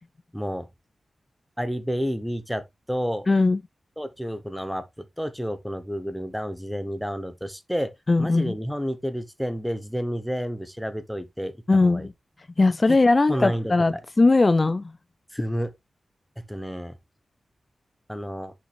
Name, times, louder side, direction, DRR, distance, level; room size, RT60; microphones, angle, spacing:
voice 1, 0.3-0.7 1.6-2.6 2.9-3.3 4.0-7.9 8.2-11.5 11.8-12.1 12.9-13.0 13.3-13.7 15.3-15.7 16.5-16.9 18.1-18.5, equal, ahead, 0.9 m, -30 dB
voice 2, 3.3-3.6 8.1-8.5 11.7-12.1 12.6-14.9, left 3 dB, 30° left, 0.3 m, -19 dB
6.6 x 5.1 x 3.3 m
wide cardioid pair, 125°, 0 cm